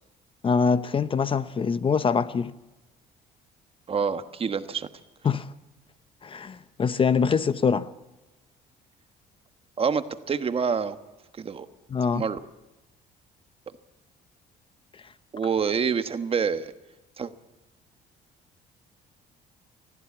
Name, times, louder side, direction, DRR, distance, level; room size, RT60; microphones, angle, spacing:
voice 1, 0.4-2.5 5.2-5.5 6.2-7.9 11.9-12.2, left 5 dB, 30° left, 0.8 m, -24 dB
voice 2, 3.9-4.9 9.8-11.0 11.4-11.7 12.1-12.4 15.3-16.7 17.2-17.3, right 6 dB, 35° right, 1.3 m, -27 dB
20.5 x 15.0 x 8.5 m
cardioid pair, 110°, 17 cm